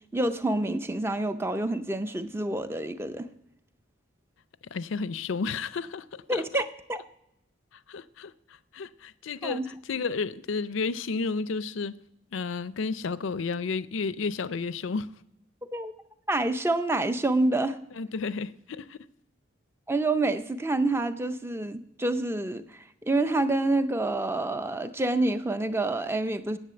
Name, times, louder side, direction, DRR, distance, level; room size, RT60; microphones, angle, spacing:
voice 1, 0.1-3.3 6.3-7.0 9.4-9.7 15.7-15.9 16.3-17.8 19.9-26.6, right 2 dB, 10° right, 0.5 m, -27 dB
voice 2, 4.7-6.6 7.9-8.3 8.7-9.6 9.9-12.0 12.3-15.1 18.0-19.0, left 4 dB, 70° left, 0.5 m, -32 dB
9.9 x 8.3 x 7.7 m
head